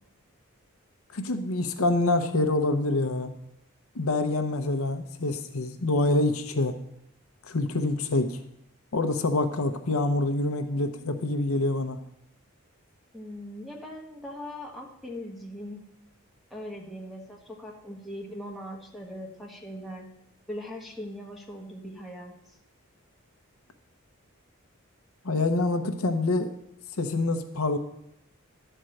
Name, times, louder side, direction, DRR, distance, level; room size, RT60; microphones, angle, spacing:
voice 1, 1.1-3.3 3.9-6.8 7.5-8.4 8.9-12.0 25.2-26.5 27.0-27.8, left 2 dB, 75° left, 7 dB, 0.8 m, -26 dB
voice 2, 13.1-15.9 16.5-20.1 20.5-22.3, equal, ahead, -2 dB, 1.3 m, -40 dB
11.5 x 4.5 x 7.7 m, 0.79 s
head